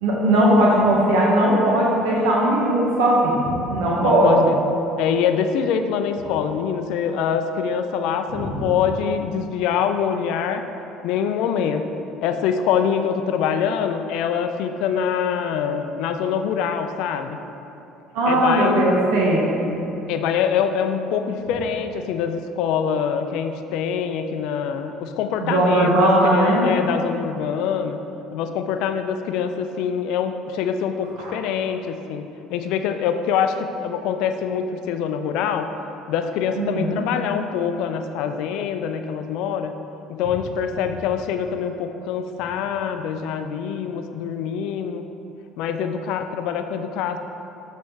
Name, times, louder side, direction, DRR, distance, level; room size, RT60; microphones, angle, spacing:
voice 1, 0.0-4.5 8.3-8.4 18.1-19.5 25.4-26.7 31.2-31.3 36.6-37.0, right 1 dB, 75° right, -4 dB, 1.0 m, -18 dB
voice 2, 4.0-4.5 5.0-10.6 11.0-11.8 12.2-17.4 18.3-18.8 20.1-28.0 28.3-32.3 32.5-33.6 33.8-35.7 36.1-39.7 40.1-45.0 45.6-47.2, left 7 dB, 70° left, 7 dB, 0.4 m, -24 dB
7.4 x 4.2 x 4.5 m, 2.9 s
hypercardioid pair, 65°, 0 cm